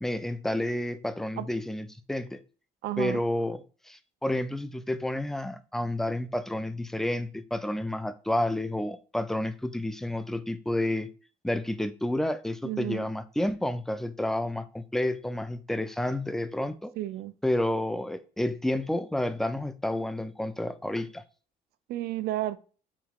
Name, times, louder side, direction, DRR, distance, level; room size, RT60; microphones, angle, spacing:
voice 1, 0.0-2.4 3.0-11.1 11.4-16.9 17.4-21.2, left 1 dB, ahead, 0.3 m, -30 dB
voice 2, 2.8-3.2 12.6-13.1 17.0-17.3 21.9-22.6, right 15 dB, 70° right, 0.4 m, -32 dB
4.8 x 2.2 x 3.6 m
cardioid pair, 110°, 17 cm